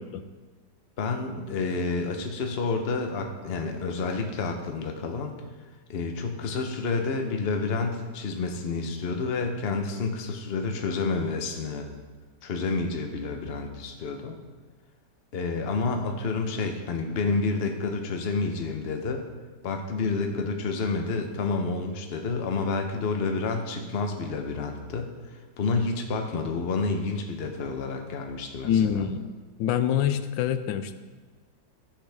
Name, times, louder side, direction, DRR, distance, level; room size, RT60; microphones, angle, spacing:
voice 1, 1.0-5.4 5.9-11.9 12.4-14.4 15.3-19.2 19.6-29.1, left 4 dB, 45° left, 4 dB, 0.9 m, -29 dB
voice 2, 28.6-29.2 29.6-30.9, left 9 dB, 85° left, 10 dB, 1.3 m, -25 dB
12.0 x 8.0 x 3.5 m, 1.4 s
omnidirectional pair, 2.0 m